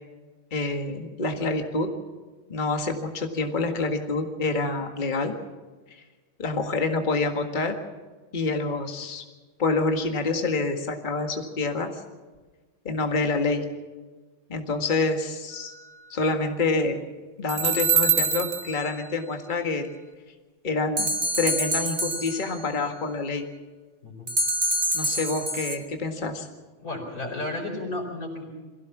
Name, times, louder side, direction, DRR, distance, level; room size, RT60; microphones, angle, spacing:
voice 1, 0.5-1.9 2.5-5.3 6.4-7.8 8.3-9.2 9.6-11.9 12.9-13.6 14.5-15.7 16.1-17.0 17.4-19.9 20.6-21.1 21.4-23.4 24.9-26.5, left 3 dB, 25° left, 5 dB, 1.7 m, -27 dB
sound 1, 17.5-18.8 21.0-22.6 24.3-25.8, right 3 dB, 30° right, 1.5 m, -25 dB
voice 2, 26.8-28.4, left 2 dB, 40° left, -2 dB, 5.2 m, -33 dB
23.5 x 16.0 x 7.3 m, 1.3 s
omnidirectional pair, 2.3 m